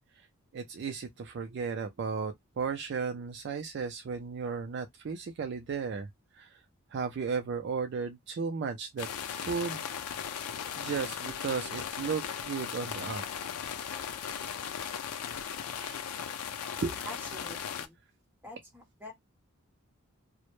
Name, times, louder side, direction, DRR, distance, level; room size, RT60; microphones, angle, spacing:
voice 1, 0.5-6.1 6.3-6.6 6.9-9.8 10.8-13.2 15.8-16.0 16.8-17.0, right 5 dB, 50° right, 0.3 m, -35 dB
sound 1, 9.0-17.9, left 8 dB, 85° left, 0.4 m, -37 dB
voice 2, 17.0-18.0 18.4-19.1, equal, 10° right, 0.9 m, -46 dB
2.0 x 2.0 x 2.9 m
head